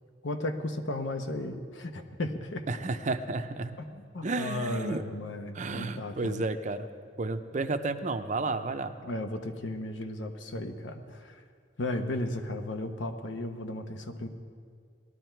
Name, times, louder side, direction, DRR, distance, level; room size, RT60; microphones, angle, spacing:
voice 1, 0.2-2.6 3.8-6.4 9.0-11.4 11.8-14.3, left 1 dB, 75° left, 7 dB, 1.0 m, -35 dB
voice 2, 2.7-3.8 4.2-5.0 5.5-6.9 7.2-8.9, right 3 dB, 40° right, 8 dB, 0.6 m, -32 dB
18.5 x 12.0 x 4.5 m, 2.1 s
head